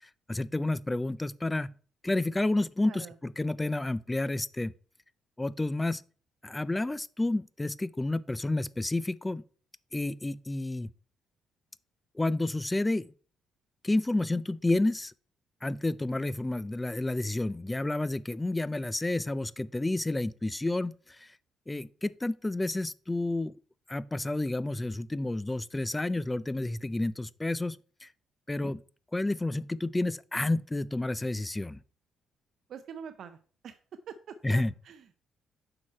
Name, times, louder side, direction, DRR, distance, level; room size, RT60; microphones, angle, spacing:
voice 1, 0.3-1.7 2.0-4.7 5.4-6.0 6.4-9.4 9.9-10.9 12.2-13.1 13.8-15.1 15.6-21.3 21.7-23.6 23.9-28.1 28.5-28.8 29.1-31.8 34.4-34.7, left 2 dB, 15° left, 0.3 m, -30 dB
voice 2, 32.7-33.4 33.6-33.8 34.1-35.2, right 7 dB, 65° right, 0.5 m, -44 dB
6.2 x 4.8 x 4.3 m
cardioid pair, 90°, 0 cm